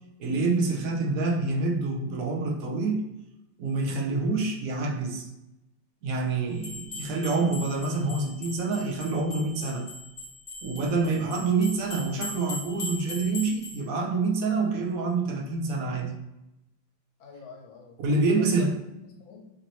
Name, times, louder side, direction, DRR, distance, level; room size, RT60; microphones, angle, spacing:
voice 1, 0.2-3.0 3.6-5.3 6.0-9.9 10.6-16.1 18.0-18.7, right 3 dB, 60° right, 0 dB, 0.9 m, -27 dB
sound 1, 6.6-13.8, left 2 dB, 35° left, 0.8 m, -40 dB
voice 2, 17.2-19.4, left 5 dB, 80° left, 1 dB, 1.6 m, -47 dB
5.9 x 2.7 x 3.0 m, 0.90 s
omnidirectional pair, 2.1 m